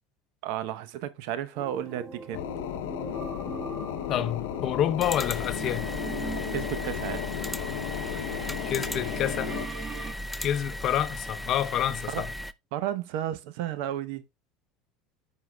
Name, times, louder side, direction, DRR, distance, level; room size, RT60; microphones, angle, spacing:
voice 1, 0.4-2.4 6.5-7.3 12.1-12.2 12.7-14.2, right 11 dB, 70° right, 0.8 m, -33 dB
sound 1, 1.5-10.1, right 4 dB, 25° right, 1.8 m, -41 dB
sound 2, 2.3-9.7, left 12 dB, 85° left, 0.7 m, -34 dB
voice 2, 4.1-5.9 8.7-9.6 10.4-12.3, left 10 dB, 50° left, 0.7 m, -28 dB
sound 3, 5.0-12.5, equal, 5° left, 0.5 m, -37 dB
13.5 x 4.7 x 2.3 m
supercardioid pair, 105°, 0 cm